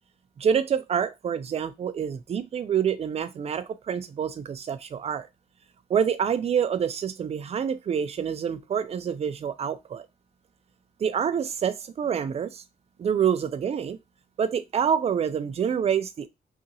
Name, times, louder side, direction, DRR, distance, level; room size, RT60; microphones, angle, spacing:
voice 1, 0.4-5.3 5.9-10.1 11.0-12.6 13.0-14.0 14.4-16.3, right 7 dB, 40° right, 0.4 m, -27 dB
2.8 x 2.5 x 2.7 m
cardioid pair, 115°, 16 cm